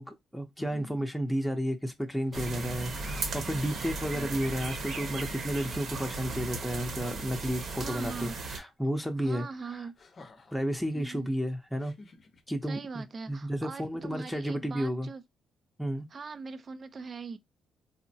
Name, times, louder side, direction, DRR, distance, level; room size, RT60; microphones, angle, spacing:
voice 1, 0.0-9.9 10.5-11.9 12.5-15.1 15.8-16.1, equal, ahead, 0.6 m, -32 dB
sound 1, 0.6-0.9 2.1-2.9 3.6-3.7 4.0-4.5 6.1-6.9 8.0-8.4 10.0-10.6 11.8-12.4, left 3 dB, 40° left, 0.6 m, -53 dB
voice 2, 0.7-1.1 4.1-4.4 7.8-8.4 9.2-10.0 10.9-11.3 12.6-15.2 16.1-17.4, right 4 dB, 40° right, 0.5 m, -41 dB
sound 2, 2.3-8.6, right 3 dB, 60° right, 0.9 m, -36 dB
3.7 x 2.1 x 2.7 m
cardioid pair, 90°, 0 cm